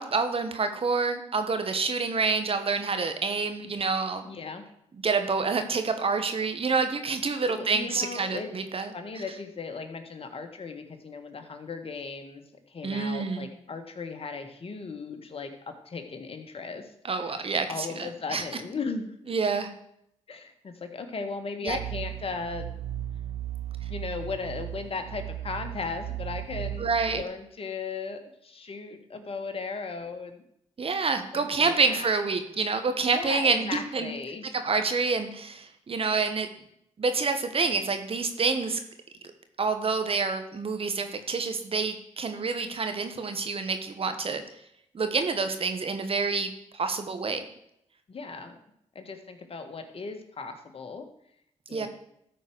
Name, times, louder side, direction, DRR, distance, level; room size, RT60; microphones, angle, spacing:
voice 1, 0.0-4.3 5.0-9.2 12.8-13.5 17.1-18.4 19.3-19.7 21.6-21.8 26.8-27.2 30.8-34.1 34.5-36.5 37.0-38.8 39.6-44.4 44.9-47.5 51.7-51.9, right 4 dB, 50° right, 8 dB, 1.4 m, -27 dB
voice 2, 4.3-4.6 7.5-8.5 8.9-15.5 15.9-16.9 17.2-17.4 17.7-19.3 20.3-22.8 23.8-30.4 31.3-32.2 33.0-34.5 48.1-48.6 49.0-51.1 51.7-51.9, left 4 dB, 50° left, 6 dB, 1.7 m, -37 dB
sound 1, 21.7-27.2, right 12 dB, 70° right, 0.8 m, -36 dB
13.0 x 4.6 x 6.3 m, 0.75 s
supercardioid pair, 50°, 12 cm